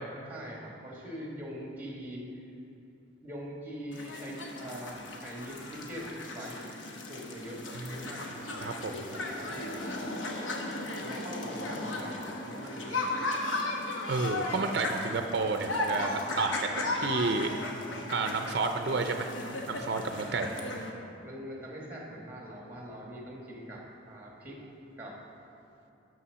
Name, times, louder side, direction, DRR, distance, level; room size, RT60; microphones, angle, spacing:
voice 1, 0.3-2.5 3.2-6.6 7.1-8.3 9.1-10.0 11.0-13.2 20.1-20.6 21.2-24.6 25.0-25.2, equal, 10° right, -2 dB, 1.3 m, -43 dB
sound 1, 3.9-20.9, left 2 dB, 75° left, 0.9 m, -36 dB
voice 2, 7.7-8.1 8.6-9.0 14.0-17.6 18.1-19.3 19.7-20.6, right 3 dB, 55° right, 6 dB, 0.5 m, -31 dB
7.0 x 6.3 x 6.1 m, 2.8 s
head